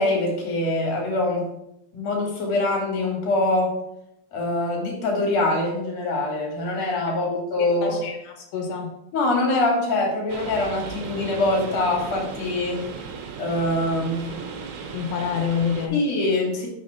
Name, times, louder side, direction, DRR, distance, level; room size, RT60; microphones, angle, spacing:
voice 1, 0.0-1.5 1.9-3.8 4.3-8.0 9.1-12.8 13.4-14.3 15.9-16.7, left 2 dB, 45° left, -2 dB, 3.0 m, -24 dB
voice 2, 7.6-8.9 14.9-16.0, left 6 dB, 80° left, 2 dB, 3.1 m, -27 dB
sound 1, 10.3-15.9, right 6 dB, 75° right, 3.0 m, -36 dB
6.4 x 6.3 x 4.4 m, 0.82 s
omnidirectional pair, 5.0 m